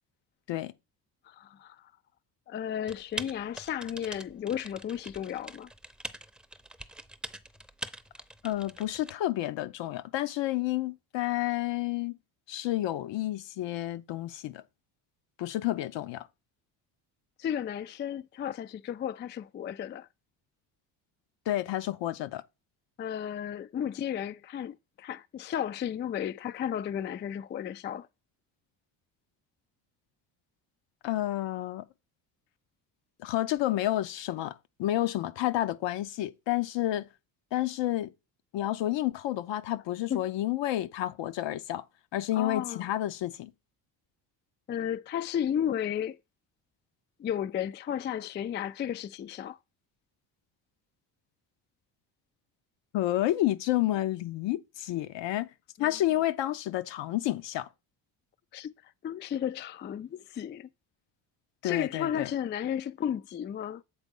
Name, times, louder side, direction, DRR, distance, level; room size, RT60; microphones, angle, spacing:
voice 1, 1.3-1.8 2.5-5.7 17.4-20.1 23.0-28.1 40.1-40.2 42.3-42.9 44.7-46.2 47.2-49.6 55.8-55.9 58.5-58.7 59.0-60.7 61.6-63.8, left 9 dB, 25° left, 0.3 m, -33 dB
Typing, 2.9-9.1, right 1 dB, ahead, 0.6 m, -43 dB
voice 2, 8.4-12.2 12.5-14.6 15.4-16.3 21.5-22.4 31.0-31.8 33.2-37.1 37.5-38.1 38.5-41.8 42.1-43.5 52.9-55.5 55.8-57.7 61.6-62.3, left 14 dB, 65° left, 0.8 m, -30 dB
8.0 x 3.9 x 5.3 m
supercardioid pair, 75°, 47 cm